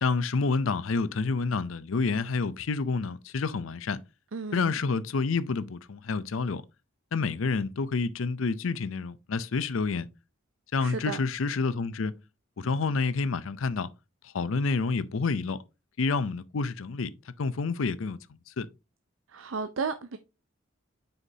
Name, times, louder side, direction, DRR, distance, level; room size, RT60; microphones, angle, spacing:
voice 1, 0.0-4.0 4.5-6.6 7.1-10.1 10.7-12.1 12.6-13.9 14.2-15.6 16.0-17.1 17.4-18.2 18.6-18.7, left 4 dB, 80° left, 0.6 m, -28 dB
voice 2, 4.3-4.7 10.8-11.2 19.3-20.2, right 5 dB, 75° right, 0.6 m, -33 dB
8.1 x 5.7 x 2.7 m
head